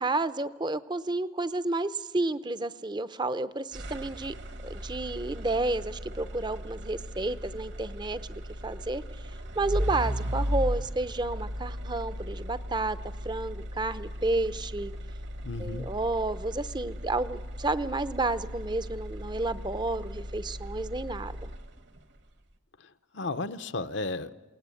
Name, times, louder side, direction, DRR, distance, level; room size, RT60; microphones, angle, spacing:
voice 1, 0.0-4.3 4.6-9.0 9.6-13.0 13.2-14.9 15.6-21.5, right 2 dB, 20° right, 14 dB, 0.7 m, -31 dB
sound 1, 3.7-22.0, equal, 60° right, 1.6 m, -36 dB
voice 2, 15.4-15.9 22.8-24.3, left 3 dB, 65° left, 10 dB, 1.0 m, -34 dB
28.5 x 18.5 x 8.4 m, 1.2 s
head